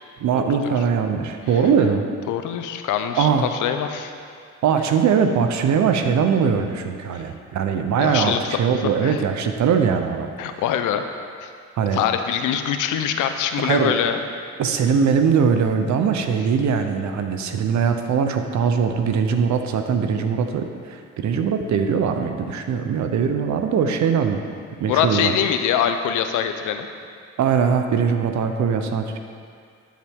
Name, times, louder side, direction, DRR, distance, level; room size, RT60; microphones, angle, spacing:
voice 1, 0.2-2.0 3.2-3.5 4.6-10.6 11.8-12.0 13.6-14.0 14.6-24.4 24.8-25.3 27.4-29.2, right 6 dB, 70° right, 6 dB, 0.9 m, -21 dB
voice 2, 2.3-4.1 7.1-7.2 8.0-8.6 9.0-9.2 10.4-11.0 11.4-11.5 11.9-14.2 24.9-26.9, left 9 dB, 85° left, 7 dB, 0.7 m, -23 dB
12.0 x 7.4 x 3.7 m, 2.3 s
cardioid pair, 90°, 30 cm